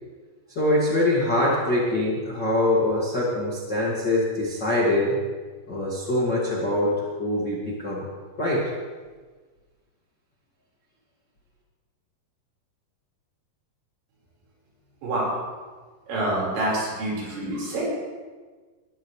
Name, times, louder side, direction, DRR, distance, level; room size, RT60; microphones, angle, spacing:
voice 1, 0.5-5.2 5.7-8.0 8.4-8.7, left 1 dB, 35° left, -6 dB, 1.8 m, -24 dB
voice 2, 15.0-15.3 16.1-17.8, right 1 dB, 70° right, -5 dB, 7.1 m, -27 dB
20.5 x 13.5 x 3.3 m, 1.4 s
omnidirectional pair, 5.4 m